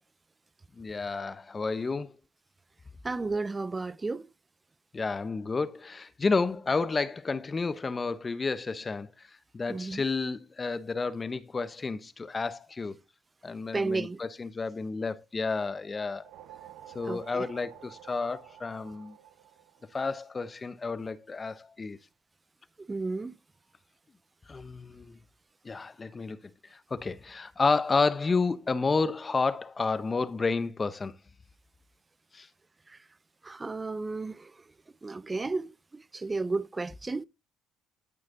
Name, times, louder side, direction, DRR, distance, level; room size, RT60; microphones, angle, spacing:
voice 1, 0.8-2.1 4.9-9.1 9.5-13.0 13.4-16.3 16.9-19.1 19.9-22.0 24.5-25.2 25.6-26.4 26.9-31.2 32.3-32.5, left 4 dB, 25° left, 1.0 m, -30 dB
voice 2, 3.0-4.3 9.7-10.0 13.7-14.2 17.1-17.5 22.9-23.4 32.9-33.0 33.4-34.5 35.0-37.2, right 3 dB, 20° right, 0.6 m, -33 dB
sound 1, 16.0-20.6, right 11 dB, 80° right, 1.1 m, -51 dB
13.5 x 6.4 x 3.9 m
cardioid pair, 95°, 0 cm